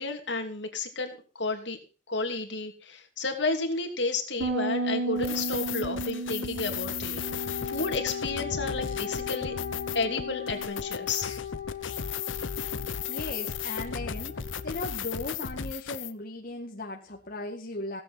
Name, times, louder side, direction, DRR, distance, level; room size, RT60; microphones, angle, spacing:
voice 1, 0.0-1.8 2.1-9.5 9.9-11.4, left 3 dB, 65° left, 4 dB, 3.0 m, -32 dB
Bass guitar, 4.4-10.7, right 2 dB, 65° right, 3.9 m, -35 dB
sound 1, 5.2-16.1, left 7 dB, 90° left, 0.9 m, -35 dB
Wind instrument woodwind instrument, 7.2-14.9, left 8 dB, 20° left, 3.4 m, -38 dB
voice 2, 13.1-18.0, left 2 dB, 50° left, 0 dB, 1.8 m, -37 dB
16.5 x 8.4 x 5.6 m, 0.35 s
head